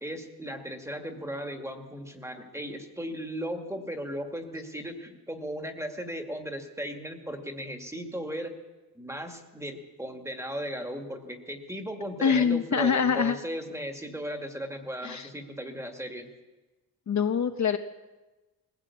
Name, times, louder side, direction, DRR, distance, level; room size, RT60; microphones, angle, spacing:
voice 1, 0.0-8.6 9.0-16.3, equal, 5° right, 5 dB, 1.9 m, -36 dB
voice 2, 12.2-13.4 15.0-15.3 17.1-17.8, left 6 dB, 45° left, 7 dB, 0.9 m, -24 dB
21.5 x 16.5 x 8.4 m, 1.2 s
wide cardioid pair, 160°, 39 cm